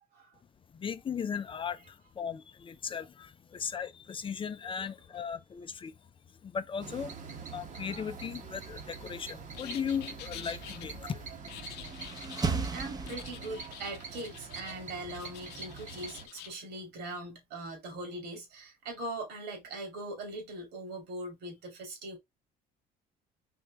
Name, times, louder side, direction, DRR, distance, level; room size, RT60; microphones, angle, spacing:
voice 1, 0.7-5.9 6.4-11.2, left 7 dB, 30° left, 0.5 m, -37 dB
sound 1, 6.8-16.3, right 5 dB, 50° right, 1.2 m, -45 dB
sound 2, 9.5-10.8 11.5-12.5 13.1-14.8 15.1-16.5, left 12 dB, 85° left, 0.6 m, -48 dB
sound 3, 11.4-13.8, right 4 dB, 25° right, 0.9 m, -35 dB
voice 2, 12.0-22.2, right 2 dB, 80° right, 2.6 m, -41 dB
4.4 x 3.2 x 3.4 m
cardioid pair, 110°, 17 cm